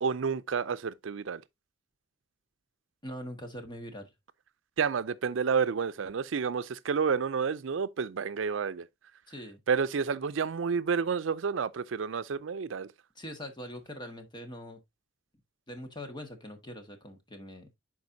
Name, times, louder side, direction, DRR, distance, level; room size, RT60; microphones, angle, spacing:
voice 1, 0.0-1.4 4.8-8.9 9.7-12.9, right 6 dB, 85° right, 0.5 m, -30 dB
voice 2, 3.0-4.1 9.3-9.6 13.1-14.8 15.7-17.7, equal, 25° left, 1.6 m, -42 dB
10.5 x 4.7 x 2.7 m
head